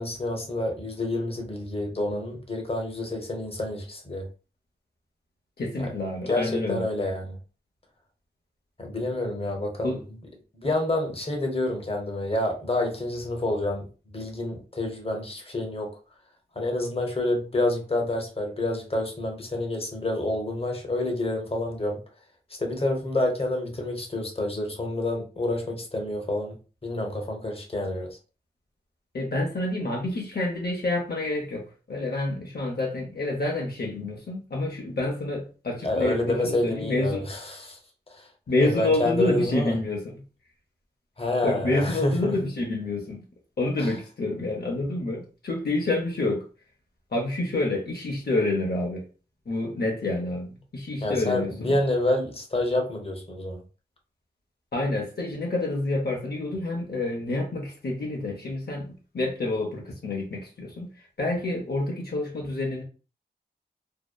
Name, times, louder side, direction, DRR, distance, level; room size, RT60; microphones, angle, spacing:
voice 1, 0.0-4.3 6.3-7.4 8.8-10.0 10.5-15.9 16.6-22.0 22.6-26.6 26.8-28.2 35.8-37.8 38.1-38.3 38.6-39.7 41.2-42.3 43.8-43.9 51.0-53.6, left 1 dB, 35° left, 0.8 m, -28 dB
voice 2, 5.6-6.8 9.8-10.0 29.1-37.3 38.5-40.2 41.4-43.2 43.6-46.4 47.1-49.0 49.5-51.7 54.7-62.8, left 2 dB, 65° left, 0.6 m, -28 dB
2.7 x 2.1 x 2.2 m
cardioid pair, 40°, 18 cm